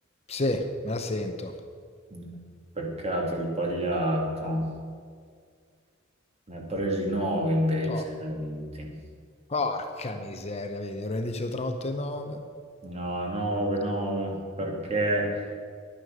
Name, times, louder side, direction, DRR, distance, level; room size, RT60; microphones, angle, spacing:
voice 1, 0.3-1.5 7.9-8.0 9.5-12.4, left 2 dB, 30° left, 6 dB, 0.8 m, -31 dB
voice 2, 2.8-4.7 6.5-8.9 12.8-15.4, right 1 dB, 30° right, 0 dB, 2.3 m, -28 dB
11.0 x 9.6 x 6.6 m, 2.1 s
head